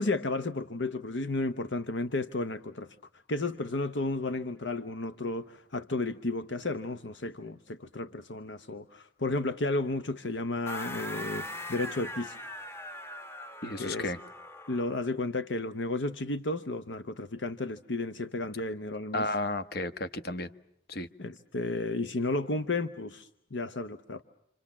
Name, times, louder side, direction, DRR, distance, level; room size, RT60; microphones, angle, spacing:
voice 1, 0.0-3.0 3.3-12.4 13.8-14.1 14.7-19.3 21.2-24.2, left 2 dB, 70° left, 11 dB, 1.0 m, -33 dB
sound 1, 10.7-15.1, left 1 dB, 15° left, 1.1 m, -41 dB
voice 2, 13.6-14.2 19.1-20.5 20.9-21.1, left 2 dB, 55° left, 11 dB, 1.3 m, -32 dB
28.5 x 27.0 x 7.3 m, 0.76 s
head